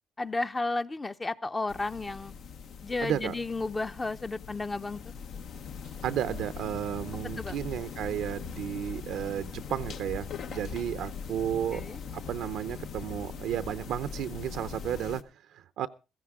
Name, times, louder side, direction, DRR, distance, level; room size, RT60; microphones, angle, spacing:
voice 1, 0.2-2.3 2.8-5.1 7.2-7.6 11.7-12.0, left 3 dB, 25° left, 0.7 m, -33 dB
sound 1, 1.7-15.2, left 6 dB, 70° left, 0.9 m, -41 dB
voice 2, 3.0-3.4 6.0-15.9, right 10 dB, 85° right, 0.7 m, -33 dB
15.5 x 14.5 x 3.6 m
cardioid pair, 90°, 0 cm